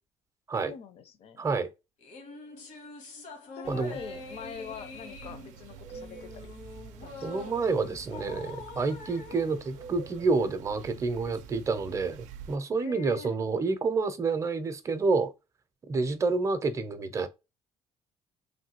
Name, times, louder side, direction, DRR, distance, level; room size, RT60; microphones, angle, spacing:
voice 1, 0.7-1.4 3.5-6.5 7.0-7.5 12.8-13.4, left 7 dB, 55° left, 0.6 m, -44 dB
voice 2, 1.4-1.7 3.7-4.0 7.2-15.3 15.9-17.3, right 4 dB, 25° right, 0.5 m, -28 dB
sound 1, 2.0-10.6, left 3 dB, 80° left, 1.1 m, -45 dB
sound 2, 3.6-12.6, right 6 dB, 85° right, 0.4 m, -47 dB
3.2 x 2.2 x 2.9 m
cardioid pair, 115°, 12 cm